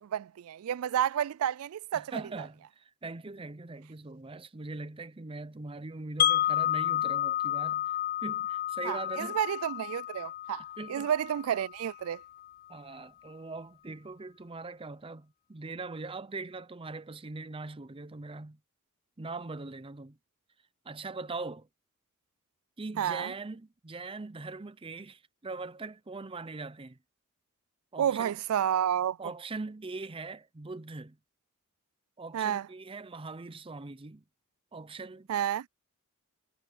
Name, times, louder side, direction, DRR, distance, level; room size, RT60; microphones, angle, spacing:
voice 1, 0.0-2.1 8.8-12.2 23.0-23.3 28.0-29.2 32.3-32.7 35.3-35.7, right 9 dB, 70° right, 0.3 m, -30 dB
voice 2, 1.9-7.9 8.2-9.4 10.8-11.1 12.7-18.6 19.2-20.2 20.8-21.7 22.8-27.0 27.9-28.3 29.2-31.2 32.2-34.2 34.7-35.3, right 3 dB, 25° right, 0.6 m, -41 dB
Wind chime, 6.2-12.2, left 13 dB, 40° left, 0.3 m, -31 dB
head